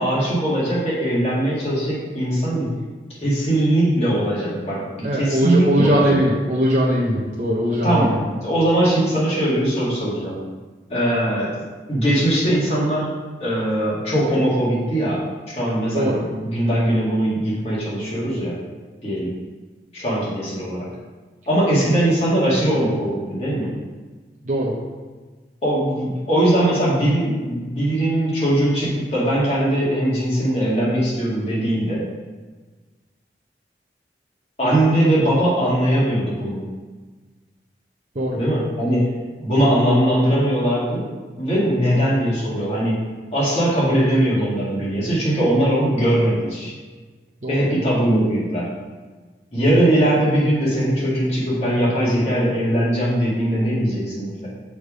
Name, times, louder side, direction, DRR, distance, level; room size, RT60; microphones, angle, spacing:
voice 1, 0.0-2.7 3.2-6.2 7.8-10.4 10.9-11.6 11.9-13.1 13.4-15.2 15.6-16.2 16.4-18.6 19.0-19.3 19.9-20.9 21.5-23.7 25.6-32.0 34.6-36.7 38.4-39.1 39.4-41.0 41.4-43.0 43.3-46.7 47.5-48.7 49.5-54.5, right 1 dB, 35° left, -7 dB, 1.9 m, -20 dB
voice 2, 5.0-8.2 15.9-16.2 24.4-24.8 38.1-38.4 47.4-47.7, equal, 45° right, -5 dB, 0.7 m, -20 dB
6.4 x 3.4 x 5.0 m, 1.4 s
head